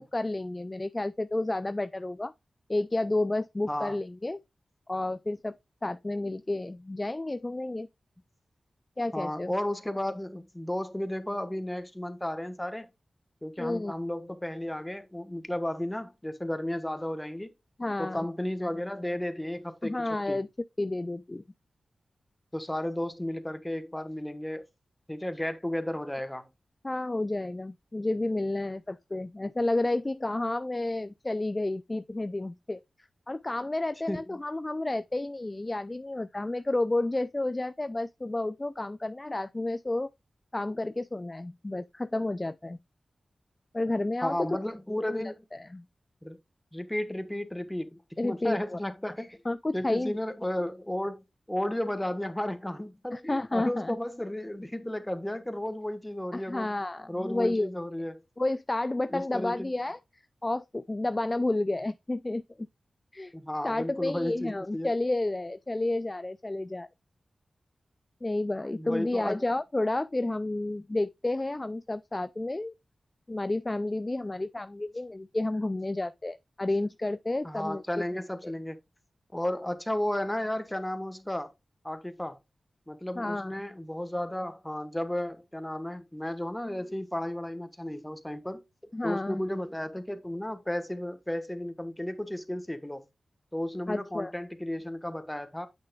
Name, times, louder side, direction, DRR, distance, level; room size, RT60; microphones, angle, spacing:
voice 1, 0.0-2.3 2.7-4.4 4.9-7.9 9.0-9.5 13.6-13.9 17.8-18.3 18.6-18.7 19.8-20.5 20.8-21.4 26.8-32.8 33.3-40.1 40.5-42.8 43.7-44.6 45.1-45.2 45.5-45.8 48.2-48.8 49.5-50.1 53.1-54.0 56.3-57.7 58.4-62.7 63.1-63.3 63.6-66.9 68.2-72.7 73.3-77.8 78.1-78.5 83.2-83.5 88.9-89.4 93.9-94.3, left 2 dB, 30° left, 0.3 m, -31 dB
voice 2, 3.7-4.0 9.1-12.9 13.4-17.5 18.0-20.0 20.3-20.4 22.5-24.6 25.1-26.5 34.1-34.2 44.2-45.3 46.2-46.4 46.7-49.4 49.7-56.7 57.1-58.2 59.1-59.7 63.3-64.9 68.7-69.4 77.4-78.8 79.3-81.5 81.8-82.4 82.9-88.6 89.0-93.0 93.5-95.7, left 1 dB, 10° left, 1.2 m, -33 dB
8.3 x 6.3 x 2.3 m
cardioid pair, 40°, 0 cm